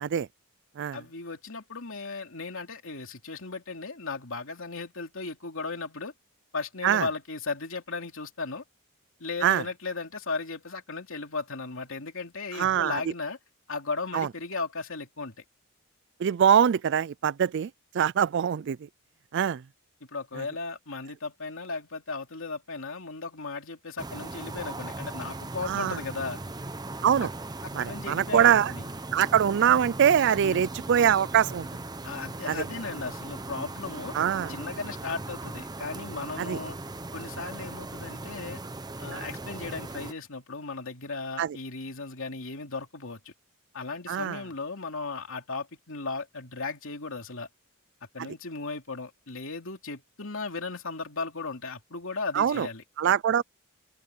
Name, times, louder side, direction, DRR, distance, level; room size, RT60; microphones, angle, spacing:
voice 1, 0.9-6.1 6.5-8.6 9.2-13.4 13.7-15.4 20.1-26.4 27.2-27.3 27.6-28.8 30.4-30.7 32.0-34.1 34.5-36.8 37.1-38.6 39.0-43.3 43.7-47.5 48.1-52.8, left 4 dB, 60° left, 3.0 m, -36 dB
voice 2, 12.6-13.0 14.1-14.3 16.2-18.8 19.3-19.6 25.7-26.0 27.0-27.3 27.7-28.7 29.1-31.7 32.5-32.6 34.1-34.5 36.4-36.6 39.1-39.3 41.4-41.6 44.1-44.4 52.3-52.7 53.0-53.4, right 9 dB, 55° right, 0.3 m, -23 dB
sound 1, 24.0-40.1, right 2 dB, 20° right, 0.8 m, -38 dB
open air
head